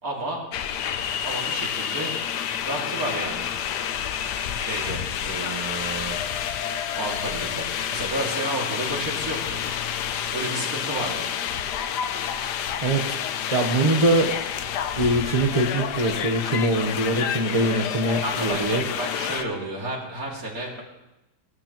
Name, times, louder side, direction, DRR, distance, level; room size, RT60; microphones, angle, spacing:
voice 1, 0.0-0.4 1.2-2.1 2.7-3.5 4.6-6.2 7.0-9.8 10.3-11.3 18.2-20.8, right 2 dB, 55° right, -2 dB, 2.9 m, -31 dB
sound 1, 0.5-19.4, left 9 dB, 75° left, 1.3 m, -29 dB
voice 2, 12.8-13.2 13.5-14.3 15.0-18.8, right 2 dB, 25° right, 4 dB, 0.8 m, -23 dB
17.0 x 12.5 x 3.0 m, 0.95 s
omnidirectional pair, 1.8 m